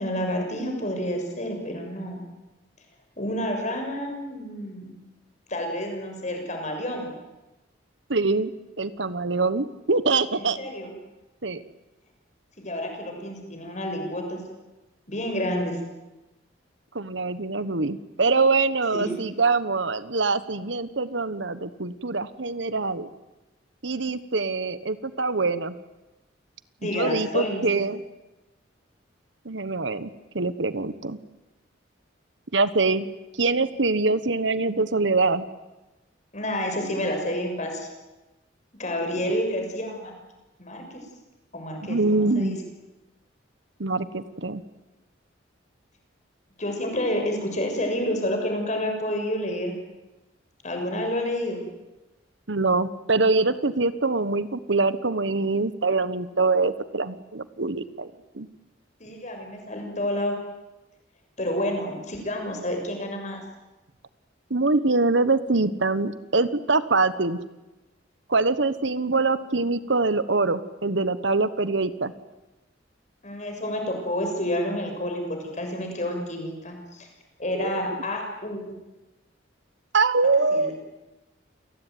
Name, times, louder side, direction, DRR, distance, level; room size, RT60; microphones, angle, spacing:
voice 1, 0.0-2.2 3.2-5.0 5.5-7.1 10.3-10.9 12.6-14.4 15.1-15.8 18.9-19.1 26.8-27.6 36.3-37.9 38.8-40.2 40.6-41.0 41.5-42.6 46.6-49.7 50.6-51.6 59.0-60.3 61.4-63.4 73.2-77.1 77.4-78.6 80.5-80.7, left 1 dB, 40° left, 3 dB, 6.6 m, -29 dB
voice 2, 8.1-8.5 8.8-10.6 11.4-11.6 16.9-23.1 23.8-25.7 26.8-28.0 29.4-30.1 30.3-31.2 32.5-33.1 33.4-35.5 41.9-42.6 43.8-44.6 52.5-58.5 64.5-67.4 68.3-72.1 77.5-77.8 79.9-80.7, right 3 dB, 70° right, 14 dB, 1.3 m, -24 dB
28.5 x 19.5 x 9.5 m, 1.0 s
head